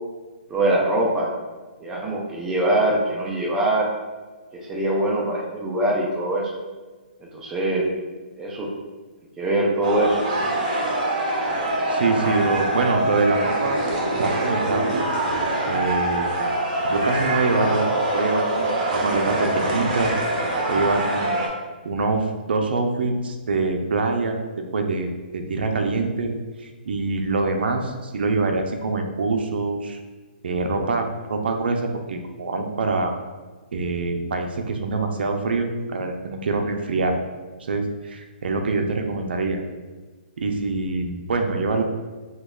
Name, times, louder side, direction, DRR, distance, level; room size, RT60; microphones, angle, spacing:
voice 1, 0.5-1.3 1.8-3.9 4.7-6.5 7.2-7.8 8.4-8.7 9.4-10.2, right 1 dB, 10° right, -2 dB, 0.4 m, -23 dB
sound 1, 9.8-21.5, right 1 dB, 40° right, 0.7 m, -24 dB
voice 2, 11.9-13.8 14.0-15.0 15.7-16.3 16.9-20.1 20.7-21.5 21.8-24.4 24.7-26.3 26.6-30.0 30.4-33.1 33.7-37.2 37.7-39.6 40.4-41.8, right 3 dB, 75° right, 4 dB, 0.5 m, -24 dB
3.0 x 2.3 x 3.5 m, 1.3 s
hypercardioid pair, 165°, 6 cm